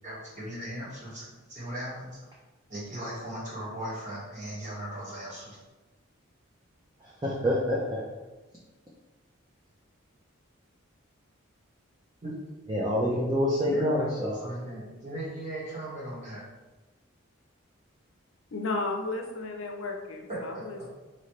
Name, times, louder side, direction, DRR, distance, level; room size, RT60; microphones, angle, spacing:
voice 1, 0.0-2.1 2.7-5.6 12.2-12.4 13.7-16.4 20.3-20.6, right 1 dB, 35° right, -7 dB, 1.5 m, -38 dB
voice 2, 7.2-8.0 12.7-14.4, equal, 20° right, -5 dB, 0.5 m, -26 dB
voice 3, 18.5-20.9, left 3 dB, 70° left, 2 dB, 0.6 m, -33 dB
3.9 x 3.1 x 3.2 m, 1.1 s
head